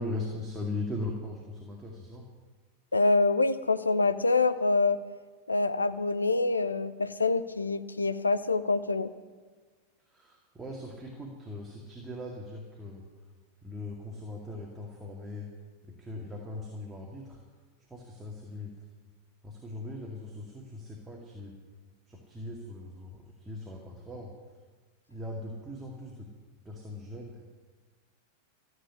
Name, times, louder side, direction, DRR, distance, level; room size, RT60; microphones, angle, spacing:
voice 1, 0.0-2.3 10.1-13.0 13.6-15.5 16.0-17.4 17.9-18.7 19.4-21.5 22.1-24.3 25.1-26.3 26.7-27.3, left 2 dB, 10° right, -1 dB, 2.2 m, -39 dB
voice 2, 2.9-5.0 5.5-9.1, left 3 dB, 80° left, 13 dB, 0.7 m, -26 dB
14.0 x 7.9 x 9.7 m, 1.4 s
figure-of-eight pair, 90°, 0 cm